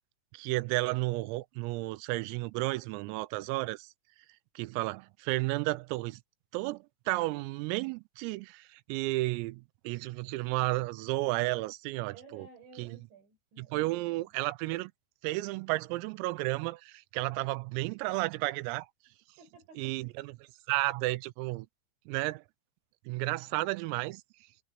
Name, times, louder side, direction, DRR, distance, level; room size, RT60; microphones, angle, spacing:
voice 1, 0.3-3.9 4.6-6.2 6.5-12.5 12.8-12.9 13.6-14.9 15.2-18.9 19.8-20.3 20.7-21.7 22.1-22.4 23.1-24.2, right 21 dB, 90° right, 3.4 m, -32 dB
voice 2, 12.1-14.3 19.4-19.9, right 5 dB, 60° right, 9.6 m, -54 dB
omnidirectional pair, 5.9 m